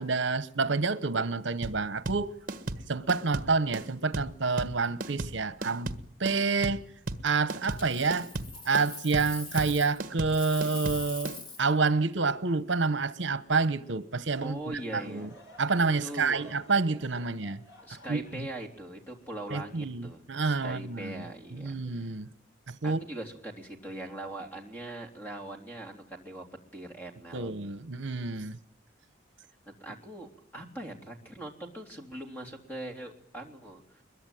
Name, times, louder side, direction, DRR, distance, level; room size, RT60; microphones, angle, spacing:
voice 1, 0.0-2.3 2.9-5.9 6.2-6.8 7.2-8.3 8.6-15.3 15.6-17.6 18.1-18.5 19.5-21.2 21.5-22.3 22.7-23.0 27.3-28.6, right 4 dB, 75° right, 1.0 m, -28 dB
sound 1, 1.6-11.4, right 2 dB, 45° right, 1.5 m, -35 dB
Coin (dropping), 7.6-10.0 10.3-11.7 14.5-14.8, left 4 dB, 30° left, 2.6 m, -43 dB
voice 2, 14.4-15.3 16.0-16.5 17.8-22.1 22.8-26.4 26.7-27.5 29.6-34.0, right 1 dB, 10° left, 3.3 m, -41 dB
Laughter / Crowd, 14.9-20.4 20.9-21.0 21.8-22.1, equal, 75° left, 4.9 m, -55 dB
23.0 x 22.0 x 9.2 m
head